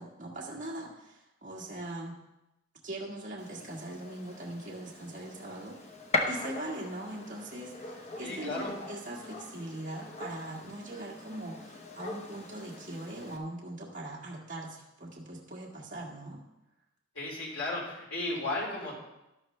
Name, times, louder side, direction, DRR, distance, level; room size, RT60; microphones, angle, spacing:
voice 1, 0.0-2.2 2.8-5.8 6.3-16.4, right 1 dB, 40° right, -4 dB, 1.8 m, -41 dB
Gunshot gunfire, 3.4-13.4, left 2 dB, 35° left, 1.1 m, -40 dB
voice 2, 8.2-8.7 17.2-19.0, left 2 dB, 70° left, -4 dB, 4.3 m, -34 dB
12.0 x 12.0 x 3.3 m, 0.92 s
head